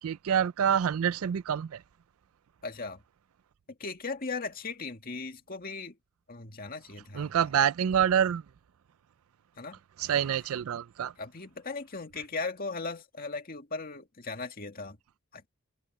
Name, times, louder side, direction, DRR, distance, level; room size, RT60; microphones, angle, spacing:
voice 1, 0.0-1.8 7.1-8.4 10.0-11.1, right 8 dB, 70° right, 0.4 m, -27 dB
voice 2, 2.6-3.0 3.8-6.0 6.3-7.3 7.6-7.7 9.6-9.8 11.2-15.0 15.3-15.5, left 3 dB, 40° left, 2.0 m, -38 dB
head